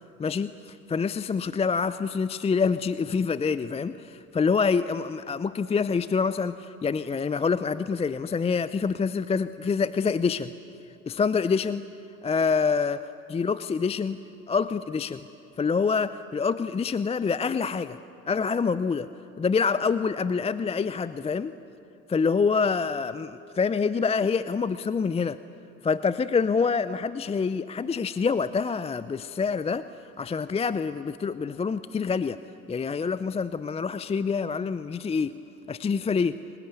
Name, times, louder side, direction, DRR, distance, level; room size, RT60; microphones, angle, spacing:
voice 1, 0.2-10.5 11.1-11.8 12.2-14.2 14.5-15.2 15.6-18.0 18.3-19.1 19.4-21.5 22.1-25.4 25.8-29.9 30.2-32.4 32.7-35.4 35.7-36.4, left 5 dB, 15° left, 15 dB, 0.5 m, -26 dB
26.0 x 19.5 x 9.1 m, 2.8 s
hypercardioid pair, 70°, 42 cm